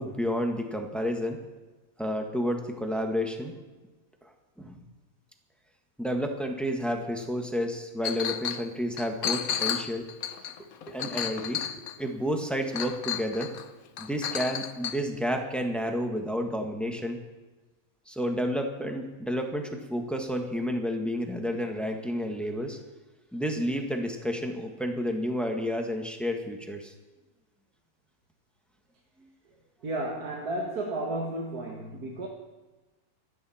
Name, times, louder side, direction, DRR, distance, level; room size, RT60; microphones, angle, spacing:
voice 1, 0.0-1.4 2.0-3.5 4.2-4.8 6.0-10.1 10.9-11.6 12.0-13.5 14.0-17.2 18.1-22.8 23.3-26.9, equal, ahead, 3 dB, 1.4 m, -30 dB
Chink clink, 8.0-8.6 9.0-12.1 12.7-13.6 14.0-15.0, left 9 dB, 70° left, 1.2 m, -32 dB
voice 2, 29.8-32.3, right 1 dB, 80° right, 0 dB, 2.0 m, -33 dB
26.5 x 9.3 x 4.4 m, 1.2 s
omnidirectional pair, 1.6 m